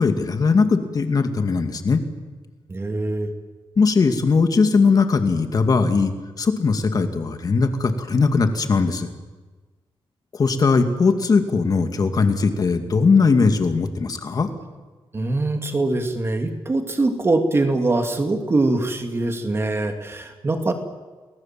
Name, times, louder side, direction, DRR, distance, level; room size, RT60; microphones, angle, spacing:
voice 1, 0.0-2.0 3.8-9.1 10.3-14.5, left 4 dB, 40° left, 6 dB, 2.2 m, -19 dB
voice 2, 2.7-3.3 15.1-20.7, right 2 dB, 25° right, 5 dB, 2.6 m, -23 dB
30.0 x 20.0 x 7.6 m, 1.3 s
wide cardioid pair, 180°, 10 cm